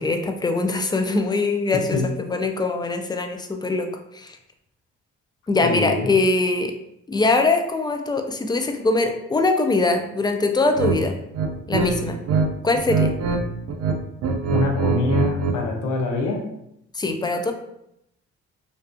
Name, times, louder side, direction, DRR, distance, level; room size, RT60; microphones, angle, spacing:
voice 1, 0.0-4.4 5.5-6.7 7.1-11.1 11.7-12.2 12.6-13.1 16.9-17.5, left 3 dB, 15° left, 5 dB, 0.3 m, -22 dB
voice 2, 5.6-6.1 14.5-16.4, left 3 dB, 75° left, 0 dB, 0.7 m, -24 dB
sound 1, 10.7-11.0 11.3-12.5 12.7-13.4 13.7-15.6, right 4 dB, 55° right, 0.5 m, -22 dB
2.5 x 2.3 x 2.3 m, 0.80 s
supercardioid pair, 60°, 30 cm